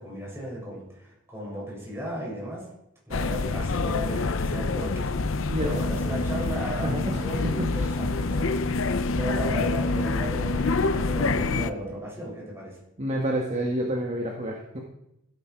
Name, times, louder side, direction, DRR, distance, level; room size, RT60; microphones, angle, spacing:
voice 1, 0.0-2.7 3.1-8.6 9.1-12.8, equal, 15° right, -4 dB, 6.3 m, -35 dB
sound 1, 3.1-11.7, left 3 dB, 65° left, 0.6 m, -26 dB
voice 2, 5.5-5.8 6.1-6.2 6.8-7.0 7.4-7.9 13.0-14.8, right 1 dB, 35° right, 0 dB, 1.6 m, -29 dB
16.0 x 9.0 x 4.7 m, 0.83 s
head